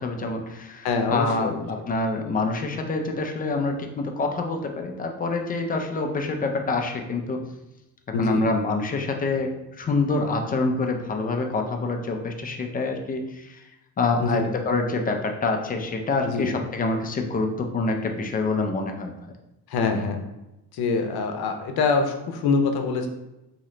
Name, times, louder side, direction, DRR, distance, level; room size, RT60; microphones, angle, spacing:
voice 1, 0.0-7.4 8.2-13.6 14.0-19.1, left 3 dB, 25° left, 3 dB, 0.4 m, -26 dB
voice 2, 0.8-1.6 8.1-8.5 14.2-14.5 16.2-16.5 19.7-20.2 20.7-23.1, left 4 dB, 70° left, 5 dB, 0.7 m, -24 dB
3.8 x 2.9 x 3.1 m, 0.94 s
cardioid pair, 130°, 39 cm